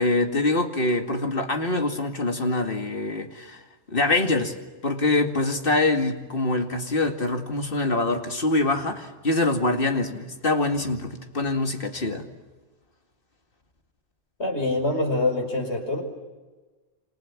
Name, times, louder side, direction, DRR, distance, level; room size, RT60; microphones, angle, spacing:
voice 1, 0.0-3.6 3.9-4.5 4.8-12.3, left 2 dB, 55° left, 4 dB, 2.5 m, -24 dB
voice 2, 14.4-16.0, left 2 dB, 70° left, 3 dB, 5.7 m, -25 dB
28.0 x 27.0 x 7.4 m, 1.3 s
omnidirectional pair, 1.1 m